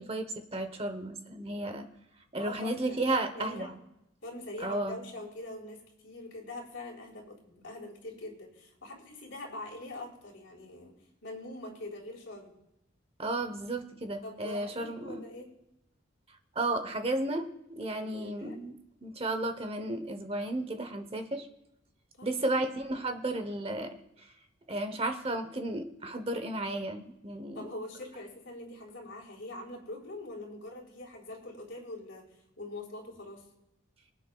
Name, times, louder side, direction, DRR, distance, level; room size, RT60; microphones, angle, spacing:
voice 1, 0.0-1.9 2.3-3.7 4.6-5.0 13.2-15.2 16.6-18.7 19.0-21.5 22.2-24.0 24.7-27.7, right 2 dB, 30° right, 8 dB, 0.8 m, -33 dB
voice 2, 2.4-3.8 4.2-5.8 6.0-10.9 11.2-12.5 14.2-15.5 18.0-18.6 22.2-22.7 27.5-32.2 32.6-33.4, left 2 dB, 65° left, -3 dB, 3.8 m, -43 dB
24.5 x 9.1 x 2.3 m, 0.85 s
head